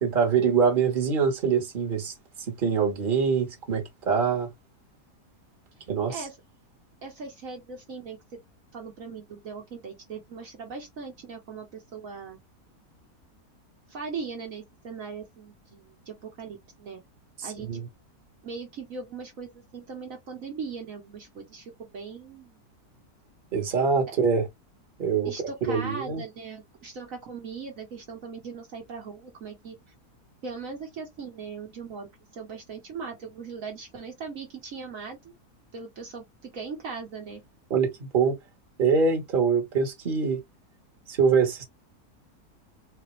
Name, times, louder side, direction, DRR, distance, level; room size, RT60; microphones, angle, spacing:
voice 1, 0.0-2.1 2.5-4.5 5.9-6.2 17.4-17.8 23.5-24.5 25.0-25.3 25.6-26.2 37.7-38.4 38.8-40.4 41.1-41.6, right 5 dB, 35° right, 1.4 m, -24 dB
voice 2, 7.0-8.2 8.7-12.4 13.9-17.0 17.4-17.7 18.4-22.6 25.2-29.8 30.4-32.1 32.3-35.3 35.7-37.4, right 5 dB, 60° right, 1.4 m, -39 dB
4.1 x 2.5 x 3.0 m
omnidirectional pair, 1.7 m